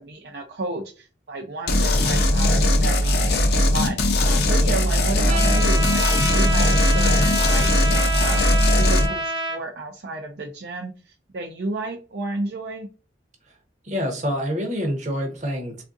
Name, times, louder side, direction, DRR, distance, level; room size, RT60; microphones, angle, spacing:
voice 1, 0.0-3.3 3.6-7.7 8.2-12.9, right 2 dB, 65° right, 1 dB, 0.5 m, -32 dB
sound 1, 1.7-9.1, left 1 dB, 60° left, 0.5 m, -19 dB
Trumpet, 5.3-9.6, right 2 dB, 80° right, 1.0 m, -27 dB
voice 2, 13.8-15.8, equal, 40° right, 3 dB, 0.9 m, -26 dB
3.5 x 2.5 x 2.5 m, 0.33 s
head